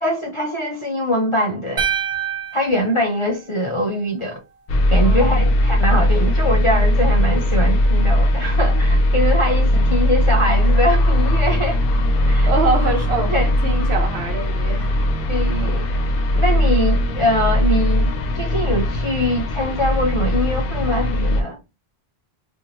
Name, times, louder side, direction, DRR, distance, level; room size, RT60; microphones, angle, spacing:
voice 1, 0.0-1.9 2.5-4.4 4.9-11.8 12.2-12.5 13.3-13.5 15.3-15.9 16.3-21.6, equal, 35° left, 0.7 m, -22 dB
sound 1, 1.8-4.0, right 8 dB, 45° right, 0.4 m, -27 dB
sound 2, 4.7-21.4, left 1 dB, 65° left, 0.8 m, -18 dB
voice 2, 5.0-5.5 12.5-15.0, right 3 dB, 90° right, 1.1 m, -24 dB
2.6 x 2.3 x 2.9 m
omnidirectional pair, 1.0 m